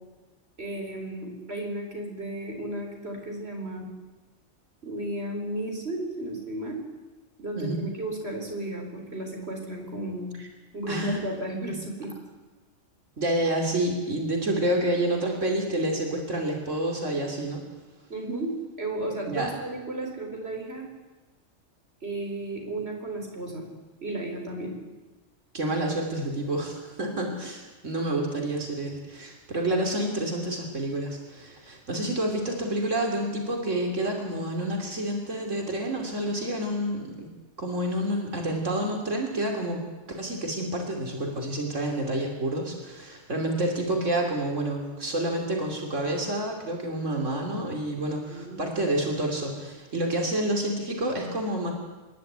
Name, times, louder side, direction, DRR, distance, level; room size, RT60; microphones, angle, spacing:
voice 1, 0.6-3.9 4.8-6.8 7.4-10.3 10.7-12.1 18.1-20.9 22.0-23.7 24.0-24.7 48.3-48.6, right 1 dB, 55° right, 1 dB, 4.5 m, -34 dB
voice 2, 10.9-11.2 11.5-11.7 13.2-17.6 19.3-19.5 25.5-37.1 37.6-39.8 40.1-51.7, right 1 dB, 80° right, 1 dB, 3.3 m, -28 dB
25.5 x 11.5 x 9.7 m, 1.2 s
omnidirectional pair, 1.3 m